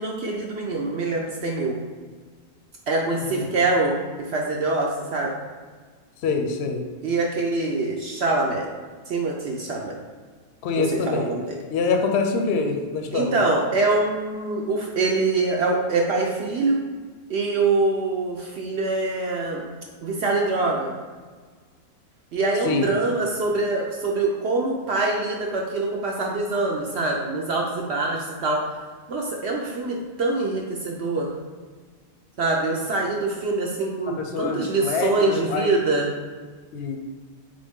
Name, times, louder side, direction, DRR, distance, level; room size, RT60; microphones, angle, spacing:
voice 1, 0.0-1.8 2.9-5.3 7.0-8.7 9.1-9.9 10.8-11.6 13.1-16.8 17.3-19.6 20.0-20.9 22.3-28.6 29.1-31.3 32.4-36.1, right 3 dB, 65° right, -1 dB, 0.7 m, -24 dB
voice 2, 6.2-6.8 10.6-11.3 11.7-13.3 22.7-22.9 34.2-35.7 36.7-37.0, left 4 dB, 60° left, 4 dB, 0.7 m, -25 dB
3.9 x 3.5 x 3.5 m, 1.5 s
omnidirectional pair, 1.5 m